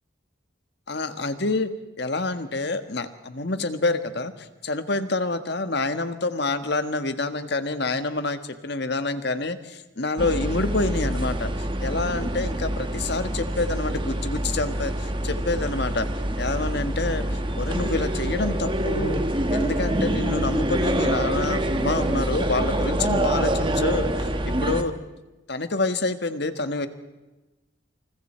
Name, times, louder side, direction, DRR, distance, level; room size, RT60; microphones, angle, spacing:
voice 1, 0.9-1.7 2.0-16.1 16.4-19.2 19.5-24.9 25.5-26.9, left 2 dB, 55° left, 9 dB, 1.6 m, -27 dB
sound 1, 10.2-24.8, right 1 dB, 25° right, 1.5 m, -26 dB
28.5 x 28.5 x 4.5 m, 1.1 s
head